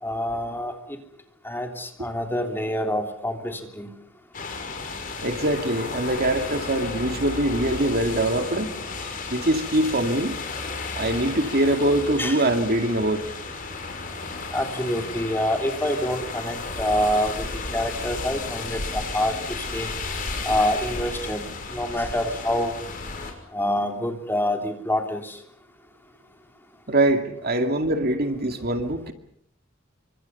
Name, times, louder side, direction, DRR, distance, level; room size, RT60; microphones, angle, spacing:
voice 1, 0.0-0.7 1.4-3.9 12.2-12.5 14.5-19.9 20.4-21.4 21.7-22.7 23.5-25.4, left 1 dB, 10° left, 3.2 m, -26 dB
sound 1, 4.3-23.3, left 3 dB, 45° left, 5.7 m, -33 dB
voice 2, 5.2-8.8 9.3-10.4 11.0-13.2 26.9-29.1, right 1 dB, 50° right, 2.4 m, -23 dB
29.0 x 25.5 x 5.6 m
head